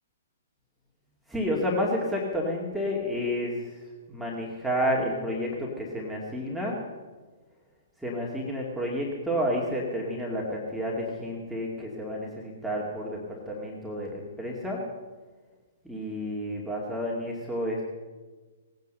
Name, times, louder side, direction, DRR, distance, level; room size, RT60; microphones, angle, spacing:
voice 1, 1.3-3.7 4.1-6.8 8.0-14.8 15.8-17.8, equal, 5° right, -3 dB, 2.3 m, -30 dB
18.5 x 9.4 x 6.6 m, 1.3 s
figure-of-eight pair, 115°, 0 cm